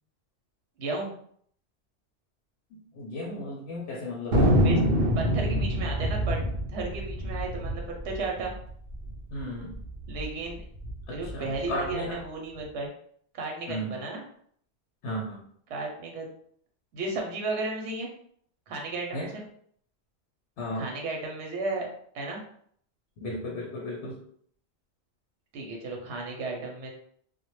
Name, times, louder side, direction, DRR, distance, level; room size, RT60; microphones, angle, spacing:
voice 1, 0.8-1.1 4.6-4.8 5.2-6.4 6.7-8.5 10.1-10.6 11.1-12.9 13.3-14.2 15.7-16.3 16.9-18.1 18.7-19.4 20.8-21.9 22.1-22.4 25.5-26.9, right 3 dB, 90° right, 1 dB, 0.9 m, -33 dB
voice 2, 2.7-4.5 9.3-9.7 11.1-12.2 13.7-14.0 15.0-15.4 19.1-19.3 20.6-20.9 23.2-24.2, left 1 dB, 80° left, -3 dB, 0.9 m, -35 dB
Thunder, 4.3-9.1 9.4-9.5 9.7-10.3 10.7-11.9, equal, 65° right, 0.7 m, -26 dB
2.1 x 2.0 x 3.0 m, 0.62 s
omnidirectional pair, 1.1 m